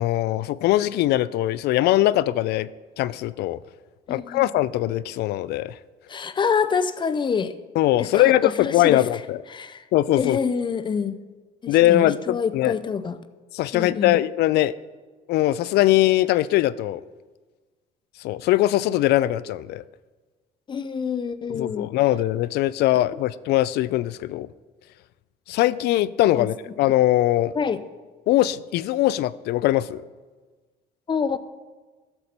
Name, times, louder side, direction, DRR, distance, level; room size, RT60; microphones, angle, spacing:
voice 1, 0.0-2.7 3.0-3.6 4.1-5.8 7.8-9.4 9.9-10.4 11.7-12.8 13.5-14.7 15.3-17.0 18.2-19.8 21.5-24.5 25.5-27.5 28.3-30.0, left 15 dB, 75° left, 18 dB, 0.4 m, -21 dB
voice 2, 4.1-4.5 6.1-7.5 8.0-9.0 9.5-9.8 10.2-11.1 11.6-13.2 13.7-14.2 20.7-21.9 26.3-26.5 27.6-27.8 31.1-31.4, left 6 dB, 30° left, 12 dB, 0.6 m, -26 dB
13.5 x 6.9 x 4.3 m, 1.3 s
cardioid pair, 110°, 17 cm